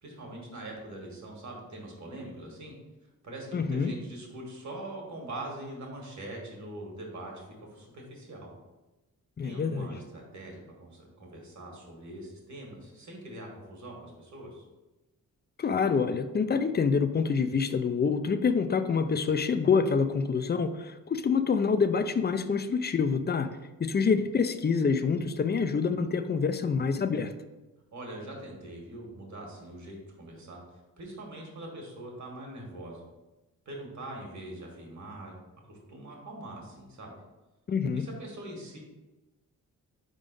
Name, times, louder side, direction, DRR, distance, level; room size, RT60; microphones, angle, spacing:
voice 1, 0.0-2.7 3.2-7.4 7.7-8.5 9.4-14.6 27.9-30.6 31.0-33.0 33.7-35.3 35.7-37.1 37.9-38.8, right 1 dB, 55° right, -1 dB, 1.7 m, -43 dB
voice 2, 3.5-3.9 9.4-9.9 15.6-23.5 23.8-27.3 37.7-38.1, left 5 dB, 30° left, 10 dB, 0.4 m, -26 dB
4.9 x 3.8 x 5.2 m, 1.1 s
cardioid pair, 100°, 35 cm